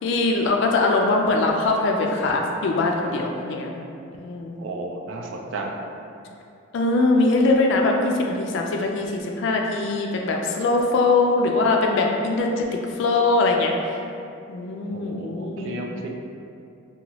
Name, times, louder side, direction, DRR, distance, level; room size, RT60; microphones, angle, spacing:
voice 1, 0.0-3.8 4.2-4.6 6.7-12.7 12.9-13.7 14.5-15.8, left 3 dB, 60° left, 1 dB, 0.3 m, -22 dB
voice 2, 4.6-5.8 14.9-16.1, right 2 dB, 60° right, 1 dB, 0.3 m, -33 dB
2.7 x 2.2 x 2.9 m, 2.5 s
head